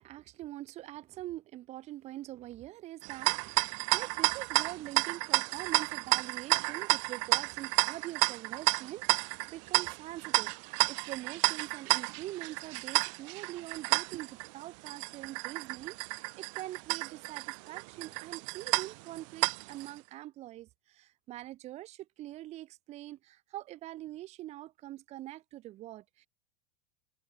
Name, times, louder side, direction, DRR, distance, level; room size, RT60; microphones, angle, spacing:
voice 1, 0.0-26.3, right 15 dB, 35° right, 3.8 m, -44 dB
sound 1, 3.0-19.9, right 30 dB, 50° right, 0.9 m, -31 dB
open air
supercardioid pair, 160°, 20 cm